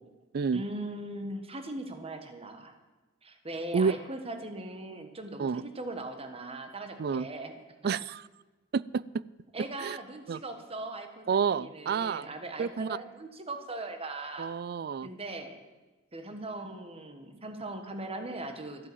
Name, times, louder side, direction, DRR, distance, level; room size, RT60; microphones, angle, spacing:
voice 1, 0.5-2.7 3.2-7.6 9.5-14.5 15.0-15.6 16.1-18.9, right 2 dB, 30° right, 6 dB, 1.4 m, -39 dB
voice 2, 7.8-8.2 8.7-9.0 9.8-10.0 10.3-10.4 11.3-12.3 12.6-12.9 14.4-15.1, right 6 dB, 50° right, 21 dB, 0.4 m, -29 dB
14.0 x 8.7 x 8.6 m, 1.2 s
head